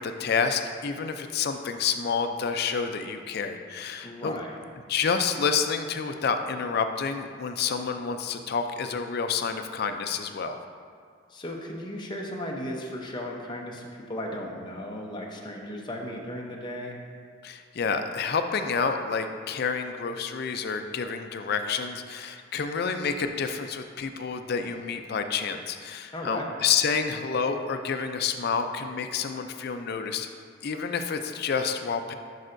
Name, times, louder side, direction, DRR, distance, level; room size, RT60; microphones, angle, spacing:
voice 1, 0.0-4.4 4.9-10.6 17.4-30.3 30.6-32.1, left 6 dB, 50° left, 7 dB, 0.4 m, -29 dB
voice 2, 4.0-4.6 11.3-17.0 26.1-26.5, left 1 dB, 20° left, -1 dB, 0.7 m, -36 dB
10.5 x 5.4 x 2.6 m, 2.1 s
head